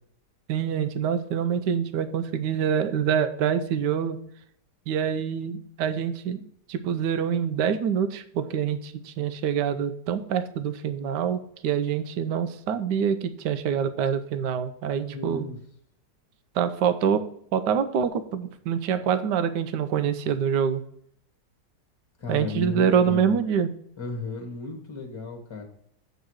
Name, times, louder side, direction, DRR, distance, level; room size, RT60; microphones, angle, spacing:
voice 1, 0.5-4.2 4.9-15.4 16.5-17.2 17.5-20.8 22.3-23.7, right 7 dB, 80° right, 11 dB, 1.3 m, -26 dB
voice 2, 14.9-15.6 22.2-23.4 24.0-25.6, left 3 dB, 15° left, 3 dB, 1.4 m, -34 dB
8.0 x 4.0 x 6.2 m, 0.68 s
omnidirectional pair, 1.9 m